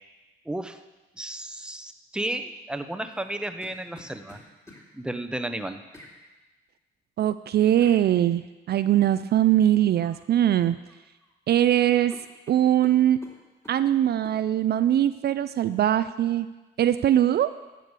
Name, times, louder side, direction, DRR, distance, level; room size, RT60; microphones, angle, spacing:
voice 1, 0.5-0.8 1.2-4.4 4.9-5.8, right 1 dB, 5° right, 8 dB, 0.7 m, -33 dB
sound 1, 3.1-4.9 5.9-6.2 7.8-8.0 10.0-10.3 10.6-11.3 11.6-11.7 12.1-13.8 14.2-14.4, left 1 dB, 15° left, 2.6 m, -50 dB
voice 2, 7.2-8.4 8.7-10.8 11.5-12.1 12.5-13.2 13.7-16.5 16.8-17.5, right 11 dB, 55° right, 12 dB, 0.4 m, -21 dB
12.0 x 5.1 x 8.0 m, 1.1 s
cardioid pair, 90°, 20 cm